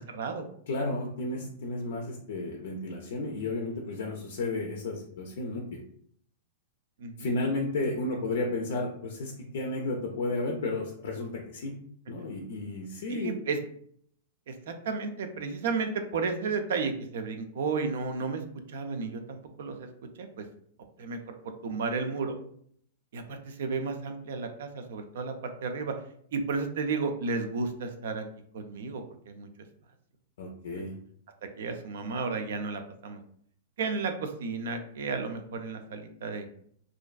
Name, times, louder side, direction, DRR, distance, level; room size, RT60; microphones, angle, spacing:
voice 1, 0.1-0.5 7.0-7.3 13.1-13.6 14.5-18.4 18.7-19.9 20.2-20.4 21.0-21.3 21.6-22.4 23.1-25.3 25.6-25.9 26.3-28.2 28.5-29.5 31.4-33.2 33.8-36.5, right 4 dB, 70° right, 7 dB, 0.4 m, -33 dB
voice 2, 0.7-5.8 7.2-11.8 12.1-13.3 30.4-31.0, left 2 dB, 70° left, 1 dB, 0.4 m, -33 dB
2.4 x 2.2 x 2.3 m, 0.63 s
hypercardioid pair, 115°, 0 cm